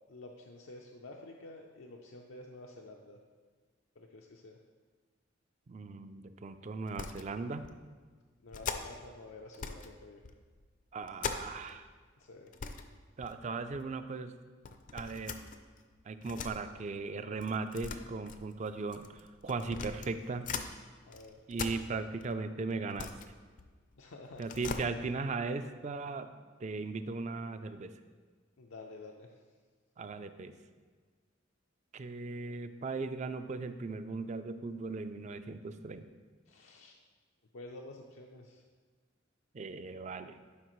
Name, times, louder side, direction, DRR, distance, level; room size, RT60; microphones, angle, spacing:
voice 1, 0.1-3.2 4.0-4.6 8.4-10.2 12.2-12.5 21.0-21.4 24.0-24.5 28.6-29.3 36.5-37.0 37.5-38.6, left 2 dB, 90° left, 0 dB, 0.6 m, -50 dB
voice 2, 5.7-7.6 10.9-11.9 13.2-14.3 14.9-15.4 16.1-20.4 21.5-23.1 24.4-26.3 26.6-27.9 30.0-30.5 31.9-36.1 39.5-40.4, right 3 dB, 35° right, 10 dB, 0.4 m, -38 dB
sound 1, 6.9-7.3 7.6-7.8 8.5-9.1 9.5-9.9 10.2-11.8 12.1-12.2 12.5-12.9 13.2-13.8 14.6-16.6 17.4-20.7 21.1-22.3 22.7-24.0 24.3-24.8, left 5 dB, 40° left, 0.4 m, -41 dB
11.5 x 5.0 x 3.1 m, 1.5 s
head